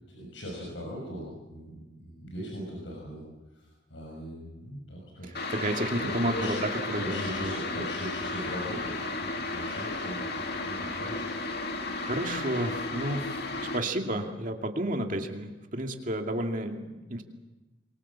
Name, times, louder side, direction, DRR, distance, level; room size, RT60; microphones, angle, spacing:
voice 1, 0.1-3.2 3.5-5.4 6.0-6.6 7.0-11.3, equal, 75° left, -1 dB, 6.5 m, -39 dB
sound 1, 5.3-13.8, left 2 dB, 55° left, 2.5 m, -34 dB
voice 2, 5.5-7.5 11.9-17.2, right 1 dB, 45° right, 3 dB, 2.5 m, -31 dB
26.5 x 23.5 x 7.4 m, 1.1 s
head